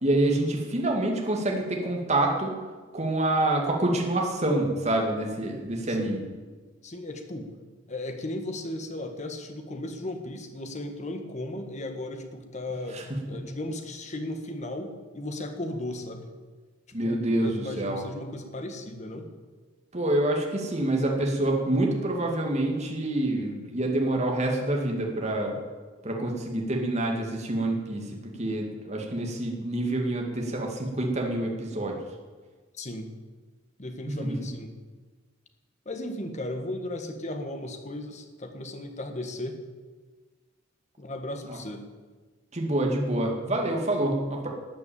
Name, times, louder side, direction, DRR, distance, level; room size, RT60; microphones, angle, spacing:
voice 1, 0.0-2.5 2.9-6.2 12.9-13.0 16.9-18.0 19.9-25.5 26.0-32.0 34.1-34.3 41.5-41.6 42.5-44.5, right 1 dB, 35° right, 1 dB, 2.2 m, -27 dB
voice 2, 6.8-7.5 7.9-16.3 17.0-19.3 32.7-33.1 33.8-34.7 35.8-39.6 41.0-41.8, left 1 dB, 35° left, 5 dB, 1.6 m, -36 dB
13.0 x 8.5 x 8.7 m, 1.4 s
head